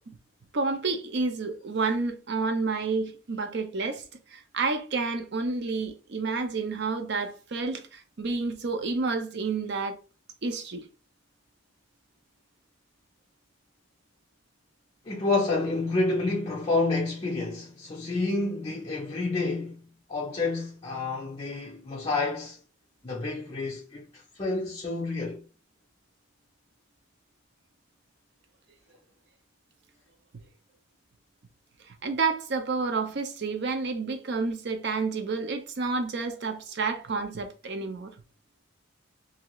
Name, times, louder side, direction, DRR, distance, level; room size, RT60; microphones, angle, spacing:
voice 1, 0.5-4.0 4.3-10.0 10.4-10.8 32.0-38.1, right 4 dB, 55° right, 0.5 m, -30 dB
voice 2, 15.0-19.8 20.1-22.6 23.0-25.4, left 3 dB, 30° left, 0.5 m, -29 dB
2.7 x 2.4 x 2.9 m
head